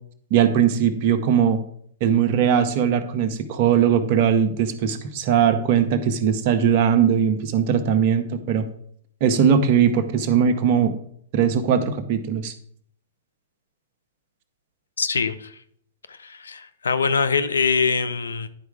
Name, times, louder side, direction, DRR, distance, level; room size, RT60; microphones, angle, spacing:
voice 1, 0.3-1.6 2.0-8.7 9.2-10.9 11.3-12.5, right 8 dB, 50° right, 9 dB, 1.0 m, -20 dB
voice 2, 15.0-15.5 16.2-18.5, left 5 dB, 80° left, 12 dB, 0.6 m, -23 dB
10.0 x 4.7 x 4.7 m, 0.64 s
hypercardioid pair, 110°, 0 cm